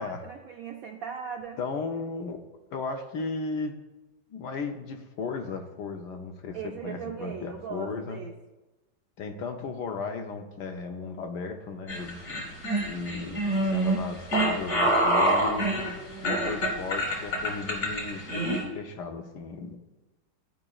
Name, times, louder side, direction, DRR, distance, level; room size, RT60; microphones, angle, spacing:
voice 1, 0.0-1.6 6.5-8.3 15.6-16.5, right 6 dB, 70° right, 2 dB, 0.8 m, -39 dB
voice 2, 1.6-2.4 2.7-3.8 4.3-8.2 9.2-12.4 12.9-19.8, left 4 dB, 70° left, 4 dB, 1.2 m, -35 dB
sound 1, 11.9-18.6, right 1 dB, 55° left, 1.9 m, -26 dB
13.5 x 4.9 x 2.3 m, 1.1 s
omnidirectional pair, 2.0 m